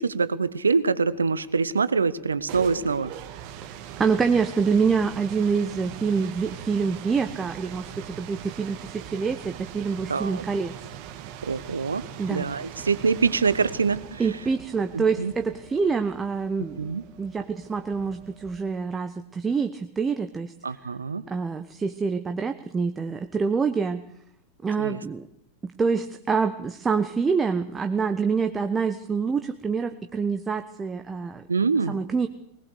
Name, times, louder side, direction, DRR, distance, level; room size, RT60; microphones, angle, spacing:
voice 1, 0.0-3.1 10.1-10.4 11.4-14.2 14.9-15.3 16.8-17.0 20.6-21.2 24.8-25.0 31.5-31.9, right 5 dB, 75° right, 16 dB, 0.9 m, -25 dB
sound 1, 2.2-18.9, right 10 dB, 45° right, 1.7 m, -41 dB
voice 2, 4.0-10.7 12.2-12.5 14.2-20.5 21.3-24.0 24.6-25.3 25.6-31.4 31.9-32.3, right 5 dB, 15° right, 8 dB, 1.0 m, -26 dB
20.5 x 20.0 x 6.7 m, 0.75 s
figure-of-eight pair, 90°, 0 cm